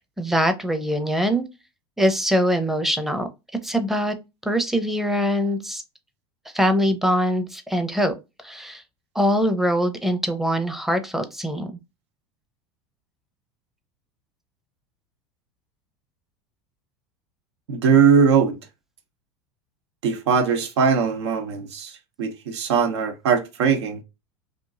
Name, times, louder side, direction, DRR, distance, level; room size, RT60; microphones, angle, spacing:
voice 1, 0.2-1.5 2.0-3.3 3.6-4.1 4.4-5.8 6.5-8.1 8.4-8.8 9.1-11.7, equal, ahead, 0.6 m, -23 dB
voice 2, 17.7-18.6 20.0-24.0, right 6 dB, 80° right, 0.7 m, -20 dB
2.9 x 2.5 x 2.4 m
hypercardioid pair, 90°, 14 cm